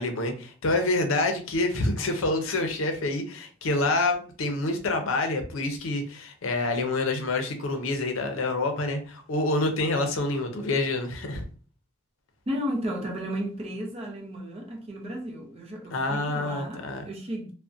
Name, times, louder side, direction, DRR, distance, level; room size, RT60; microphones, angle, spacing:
voice 1, 0.0-11.4 15.9-17.1, left 2 dB, 85° left, 0.5 m, -27 dB
voice 2, 12.5-17.5, equal, 30° right, 0.5 m, -34 dB
2.4 x 2.1 x 2.4 m
head